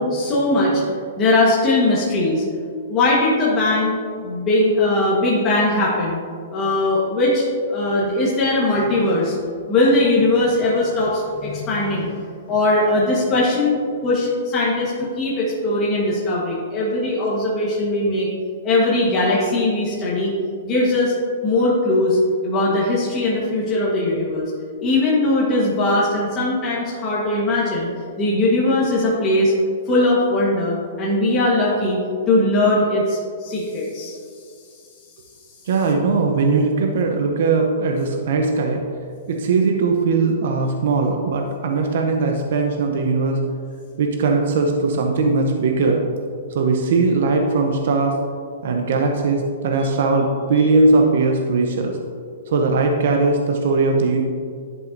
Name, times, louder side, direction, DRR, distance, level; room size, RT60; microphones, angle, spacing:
voice 1, 0.0-2.4 2.9-4.0 4.2-6.2 6.5-9.3 9.7-12.1 12.5-18.3 18.6-20.3 20.6-21.1 21.4-22.2 22.4-24.5 24.8-27.9 28.2-29.5 29.9-32.0 32.3-34.2 50.5-50.7, left 2 dB, 25° left, -6 dB, 1.3 m, -20 dB
voice 2, 35.7-38.8 39.3-43.4 44.0-46.0 46.5-48.2 48.6-52.0 52.5-54.2, right 3 dB, 65° right, 3 dB, 0.7 m, -19 dB
10.5 x 5.5 x 2.6 m, 2.3 s
hypercardioid pair, 155°, 0 cm